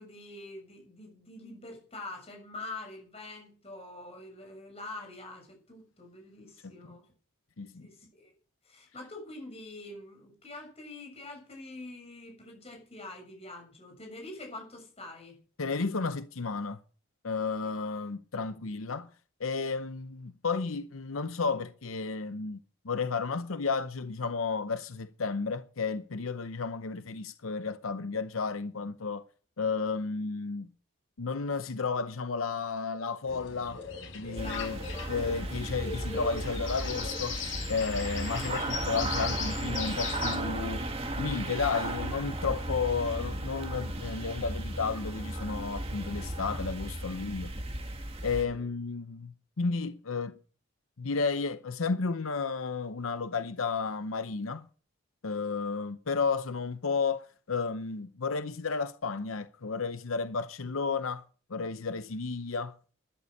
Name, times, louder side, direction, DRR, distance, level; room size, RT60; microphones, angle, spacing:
voice 1, 0.0-7.0 7.8-8.3 8.6-15.4 17.6-17.7 34.2-35.1 48.4-48.7, left 2 dB, 30° left, 6.7 m, -45 dB
voice 2, 15.6-16.8 17.2-19.1 19.4-22.6 22.8-29.2 29.6-30.7 31.2-33.8 34.1-34.8 35.1-37.4 37.7-40.9 41.2-47.5 48.2-50.3 51.0-54.7 55.2-61.2 61.5-62.7, left 4 dB, 90° left, 0.8 m, -32 dB
sound 1, 33.3-40.4, left 6 dB, 75° left, 4.1 m, -38 dB
sound 2, 34.4-48.4, right 1 dB, 30° right, 2.0 m, -35 dB
12.5 x 11.0 x 6.6 m
head